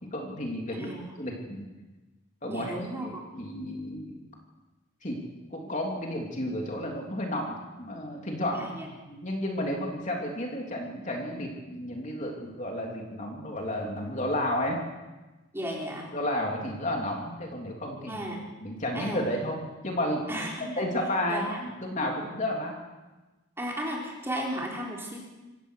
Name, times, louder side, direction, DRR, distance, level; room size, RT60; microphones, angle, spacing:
voice 1, 0.0-0.9 1.2-1.7 2.4-3.1 3.4-4.2 5.0-5.2 5.5-8.7 9.1-14.8 16.1-18.2 18.6-20.4 20.8-22.7, left 1 dB, 35° left, 0 dB, 3.3 m, -32 dB
voice 2, 0.7-1.1 2.5-3.2 8.5-8.9 15.5-16.2 18.1-18.4 18.9-19.2 20.3-20.9 21.3-21.6 23.6-25.2, equal, 10° right, -2 dB, 4.2 m, -35 dB
26.5 x 16.0 x 6.6 m, 1.1 s
head